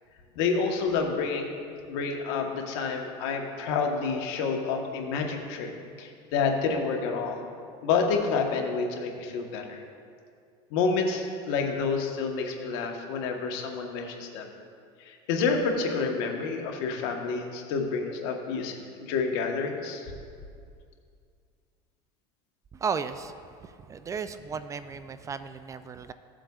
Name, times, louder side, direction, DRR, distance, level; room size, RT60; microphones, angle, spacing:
voice 1, 0.3-1.5 1.9-5.7 6.0-7.4 7.8-9.8 10.7-14.5 15.0-20.1, left 5 dB, 75° left, 2 dB, 1.2 m, -29 dB
voice 2, 22.7-26.1, right 6 dB, 25° right, 12 dB, 0.3 m, -35 dB
15.5 x 7.6 x 2.4 m, 2.2 s
supercardioid pair, 120°, 14 cm